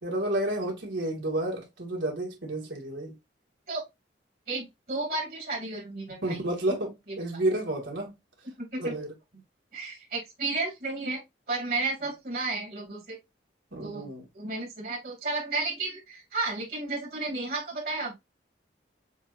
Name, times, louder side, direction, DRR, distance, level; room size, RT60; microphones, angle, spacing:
voice 1, 0.0-3.1 6.2-8.1 8.8-9.1 13.7-14.2, right 1 dB, 85° right, 2.4 m, -30 dB
voice 2, 4.5-6.4 8.6-8.9 9.7-11.2 11.5-13.2 13.8-14.1 14.3-18.1, right 3 dB, 50° right, 2.4 m, -32 dB
7.2 x 2.7 x 2.5 m
head